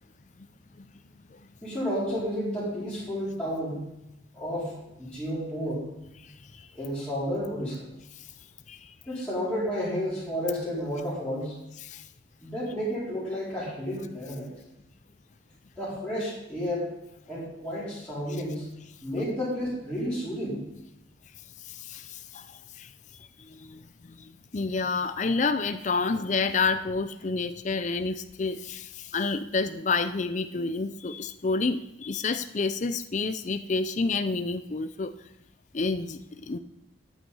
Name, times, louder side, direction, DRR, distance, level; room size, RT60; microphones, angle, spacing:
voice 1, 1.6-3.8 4.3-5.8 6.7-7.9 9.1-11.6 12.4-14.5 15.8-16.9 17.3-18.6 19.0-20.6, equal, 5° left, -10 dB, 4.3 m, -31 dB
voice 2, 6.2-6.7 8.2-8.3 8.7-8.9 11.8-12.1 18.3-18.4 19.2-19.3 21.6-22.9 23.5-35.1 35.7-36.6, left 4 dB, 40° left, 10 dB, 0.5 m, -29 dB
13.0 x 9.2 x 5.5 m, 0.88 s
head